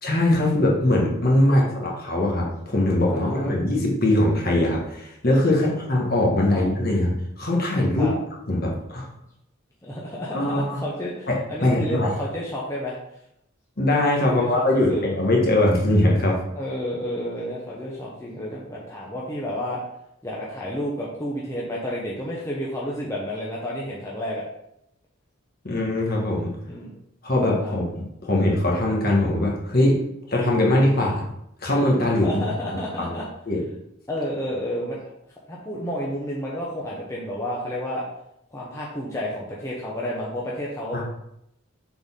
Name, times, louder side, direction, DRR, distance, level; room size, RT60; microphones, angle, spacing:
voice 1, 0.0-8.1 8.5-9.1 10.3-10.8 11.3-12.1 13.8-16.4 25.6-26.5 27.2-30.0 30.3-31.2 31.6-32.5 33.0-33.1 33.5-33.6 40.9-41.0, left 1 dB, 45° left, -2 dB, 1.5 m, -21 dB
voice 2, 3.1-3.6 5.6-5.7 6.5-6.6 8.0-8.1 9.8-13.0 14.2-15.0 16.5-19.8 20.2-24.4 26.7-26.9 27.6-27.7 32.1-33.2 34.1-35.0 35.5-38.0 38.5-41.0, equal, 15° left, -5 dB, 0.8 m, -31 dB
6.8 x 4.1 x 3.6 m, 0.79 s
head